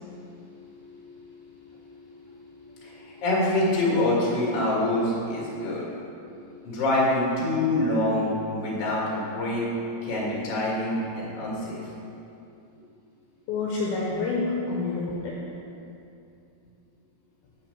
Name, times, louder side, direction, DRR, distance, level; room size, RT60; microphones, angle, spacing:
voice 1, 0.0-3.3 5.5-6.0 6.2-6.9 8.6-8.9 11.4-11.5 13.5-15.4, left 3 dB, 75° left, -3 dB, 2.5 m, -33 dB
voice 2, 2.8-5.9 6.6-9.7 10.0-11.8, left 1 dB, 45° left, -5 dB, 2.5 m, -25 dB
7.7 x 5.7 x 6.6 m, 2.7 s
omnidirectional pair, 4.7 m